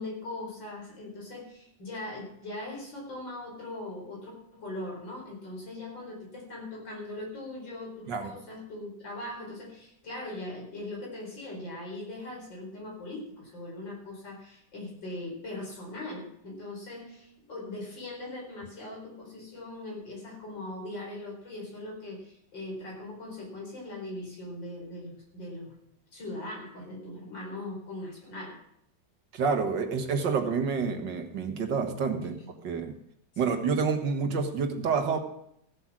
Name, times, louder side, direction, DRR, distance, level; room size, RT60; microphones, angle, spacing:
voice 1, 0.0-25.7 26.1-28.6 32.2-32.5 33.5-33.6, left 2 dB, 75° left, -1 dB, 5.2 m, -40 dB
voice 2, 29.3-32.4 32.6-32.9 33.4-35.2, right 5 dB, 70° right, 6 dB, 2.1 m, -28 dB
15.5 x 7.9 x 6.1 m, 0.75 s
omnidirectional pair, 2.0 m